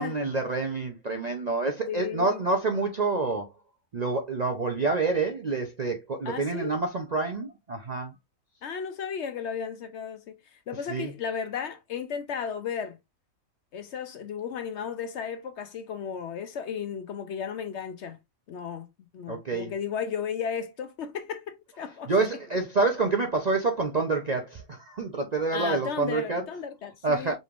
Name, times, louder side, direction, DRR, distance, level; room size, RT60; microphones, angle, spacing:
voice 1, 0.0-3.5 3.9-8.1 10.9-11.1 19.3-19.7 22.1-26.4 27.0-27.3, right 3 dB, 45° right, 0.5 m, -27 dB
voice 2, 1.9-2.4 6.2-6.8 8.6-13.0 13.7-18.2 18.5-18.9 19.1-22.4 25.5-27.3, left 7 dB, 65° left, 0.8 m, -34 dB
5.1 x 3.3 x 2.4 m
omnidirectional pair, 1.5 m